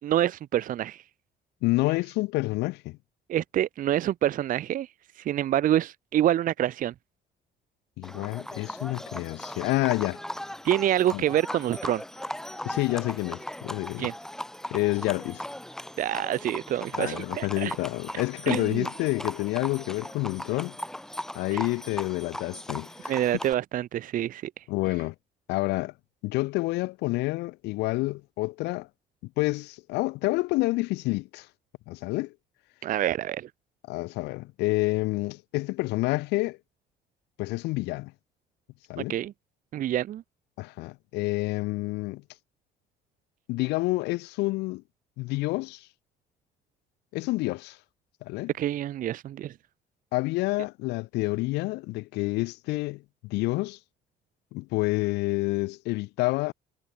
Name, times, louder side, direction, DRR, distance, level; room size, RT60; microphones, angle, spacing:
voice 1, 0.0-1.0 3.3-4.9 5.2-6.9 10.6-12.0 14.0-14.1 16.0-17.8 18.5-18.9 21.5-21.6 23.1-24.6 32.8-33.5 39.1-39.3 39.7-40.2 48.5-49.5, right 12 dB, 55° right, 0.7 m, -27 dB
voice 2, 1.6-3.0 8.0-10.2 11.1-11.2 12.6-14.1 14.7-15.4 16.9-20.8 21.3-23.1 24.7-25.1 25.5-25.9 26.2-28.9 29.4-31.5 31.9-32.3 33.9-36.6 37.4-38.1 38.9-39.2 40.6-42.2 43.5-44.8 45.2-45.9 47.1-47.8 48.2-48.5 50.1-53.8 54.5-56.5, left 21 dB, 85° left, 0.5 m, -28 dB
Livestock farm animals working animals, 8.0-23.5, left 1 dB, 5° left, 0.5 m, -38 dB
cardioid pair, 110°, 17 cm